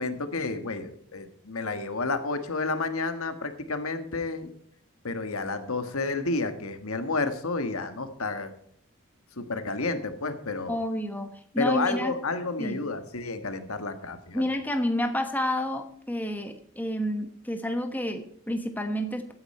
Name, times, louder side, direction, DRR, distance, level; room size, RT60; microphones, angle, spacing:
voice 1, 0.0-4.5 5.0-8.5 9.4-10.8 11.6-14.4, left 3 dB, 80° left, 9 dB, 1.6 m, -30 dB
voice 2, 10.7-12.1 12.6-12.8 14.3-19.3, left 1 dB, 10° left, 6 dB, 1.2 m, -30 dB
15.0 x 9.6 x 4.3 m, 0.65 s
head